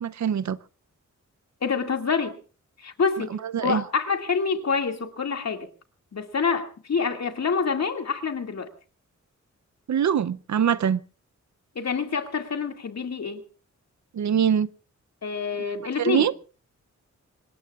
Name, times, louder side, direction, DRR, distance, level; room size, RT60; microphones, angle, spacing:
voice 1, 0.0-0.6 3.5-3.8 9.9-11.0 14.1-14.7 16.0-16.3, right 8 dB, 70° right, 0.7 m, -23 dB
voice 2, 1.6-2.4 2.8-5.7 6.1-8.7 11.8-13.4 15.2-16.3, left 5 dB, 60° left, 2.3 m, -27 dB
26.0 x 20.0 x 2.4 m
wide cardioid pair, 95°, 29 cm